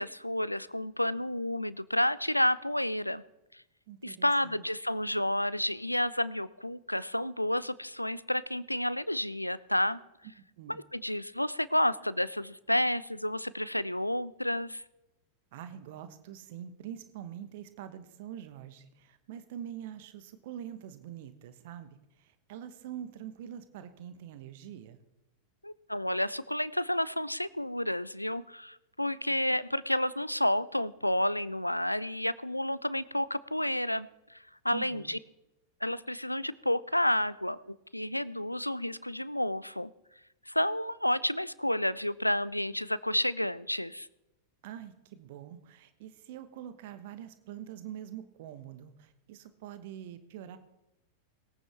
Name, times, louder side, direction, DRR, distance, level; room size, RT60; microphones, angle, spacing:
voice 1, 0.0-3.2 4.0-10.0 10.7-14.8 25.6-34.1 34.6-35.2 35.8-39.9 40.5-44.1, left 1 dB, 90° left, 19 dB, 0.4 m, -30 dB
voice 2, 3.9-4.6 10.6-10.8 15.5-21.9 22.2-25.0 34.7-35.1 44.6-50.6, right 10 dB, 50° right, 11 dB, 1.0 m, -45 dB
21.0 x 8.9 x 3.4 m, 0.95 s
figure-of-eight pair, 90°, 0 cm